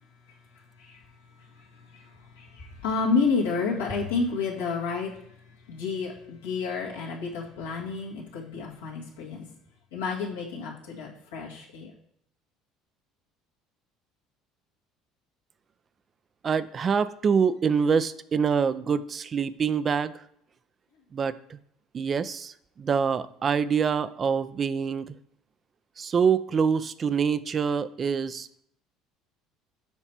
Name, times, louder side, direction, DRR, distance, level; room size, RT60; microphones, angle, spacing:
voice 1, 1.4-9.5 9.9-11.9, left 4 dB, 85° left, -5 dB, 1.9 m, -30 dB
voice 2, 16.4-20.1 21.1-21.6 21.9-25.1 26.0-28.6, right 6 dB, 40° right, 14 dB, 0.4 m, -25 dB
7.2 x 3.3 x 5.8 m, 0.71 s
hypercardioid pair, 70°, 0 cm